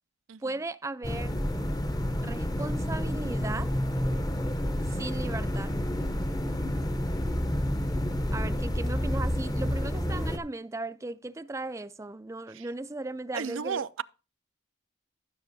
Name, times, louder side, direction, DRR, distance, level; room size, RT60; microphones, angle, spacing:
voice 1, 0.4-1.4 2.1-3.7 4.8-5.7 8.3-13.9, right 2 dB, 15° right, 0.3 m, -36 dB
sound 1, 1.0-10.4, equal, 20° left, 0.7 m, -29 dB
voice 2, 13.3-14.0, right 6 dB, 75° right, 0.5 m, -33 dB
15.5 x 7.2 x 2.7 m
head